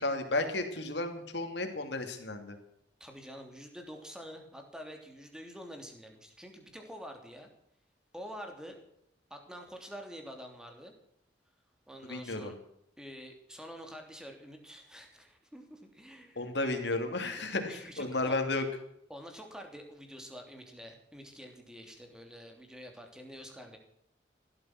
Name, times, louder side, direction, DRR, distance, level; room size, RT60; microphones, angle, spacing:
voice 1, 0.0-2.6 12.0-12.5 16.4-18.6, left 2 dB, 65° left, 6 dB, 2.9 m, -33 dB
voice 2, 3.0-7.5 8.1-8.8 9.3-10.9 11.9-12.6 13.0-16.7 17.7-18.3 19.1-23.8, equal, 5° right, 3 dB, 3.0 m, -47 dB
16.5 x 12.5 x 6.1 m, 0.76 s
head